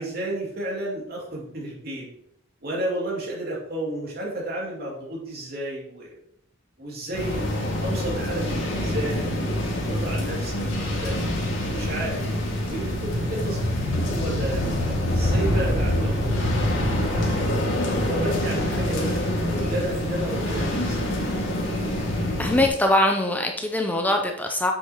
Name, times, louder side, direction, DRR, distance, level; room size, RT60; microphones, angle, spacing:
voice 1, 0.0-2.1 2.6-6.2 6.8-11.2 11.5-12.2 12.7-17.5 18.0-21.0, right 1 dB, 55° right, -3 dB, 2.6 m, -32 dB
sound 1, 7.1-22.7, left 1 dB, 90° left, 1.9 m, -25 dB
voice 2, 22.4-24.7, left 1 dB, 10° left, 3 dB, 0.5 m, -22 dB
7.7 x 6.3 x 3.0 m, 0.74 s
head